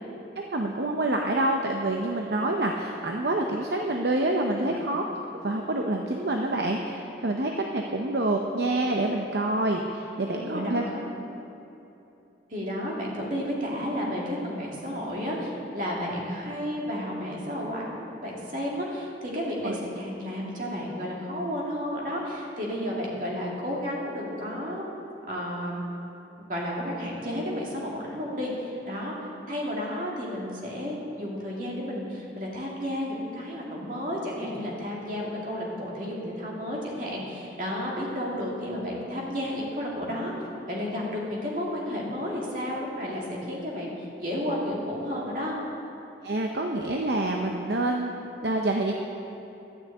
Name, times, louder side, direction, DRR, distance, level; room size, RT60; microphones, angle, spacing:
voice 1, 0.4-5.0 5.4-10.8 19.6-19.8 46.2-48.1 48.4-48.9, right 2 dB, 65° right, 1 dB, 0.7 m, -27 dB
voice 2, 4.4-4.7 10.3-11.1 12.5-24.9 25.3-25.8 26.4-29.1 29.5-40.3 40.7-45.5, equal, 45° right, -4 dB, 2.5 m, -32 dB
12.5 x 6.4 x 8.4 m, 3.0 s
head